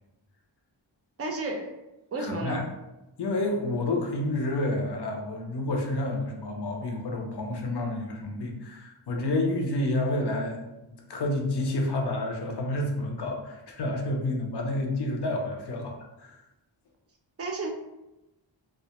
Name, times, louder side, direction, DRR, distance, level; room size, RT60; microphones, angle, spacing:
voice 1, 1.2-1.7 2.1-2.7 17.4-17.7, right 2 dB, 35° right, 2 dB, 0.5 m, -31 dB
voice 2, 2.2-2.6 3.2-16.4, left 1 dB, 60° left, 1 dB, 0.6 m, -29 dB
2.2 x 2.1 x 2.8 m, 0.97 s
wide cardioid pair, 65°, 46 cm